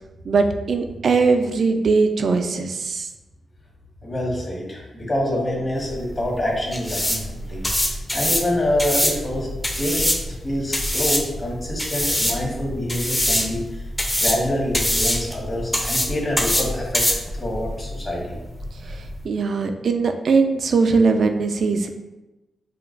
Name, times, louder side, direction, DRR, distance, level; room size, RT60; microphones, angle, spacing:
voice 1, 0.2-3.1 18.8-21.9, right 4 dB, 65° right, 6 dB, 0.3 m, -20 dB
voice 2, 4.0-9.5 9.7-13.8 14.2-18.3, left 1 dB, 35° left, -3 dB, 1.2 m, -26 dB
sound 1, 5.8-19.2, left 1 dB, 10° left, 0.6 m, -25 dB
5.0 x 2.2 x 2.5 m, 1.0 s
cardioid pair, 75°, 0 cm